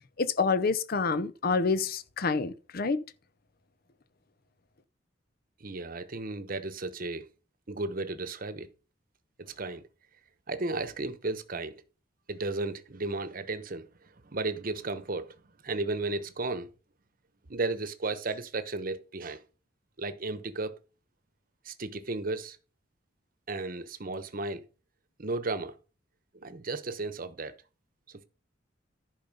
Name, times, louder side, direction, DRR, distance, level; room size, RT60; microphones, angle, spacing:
voice 1, 0.2-3.0, left 4 dB, 50° left, 0.6 m, -27 dB
voice 2, 5.6-7.3 7.7-8.7 9.4-9.8 10.5-11.7 12.3-13.9 14.2-15.3 15.6-16.7 17.5-19.4 20.0-20.8 21.6-22.6 23.5-24.6 25.2-25.7 26.3-27.5, right 3 dB, 50° right, 1.0 m, -34 dB
10.5 x 5.4 x 5.3 m
head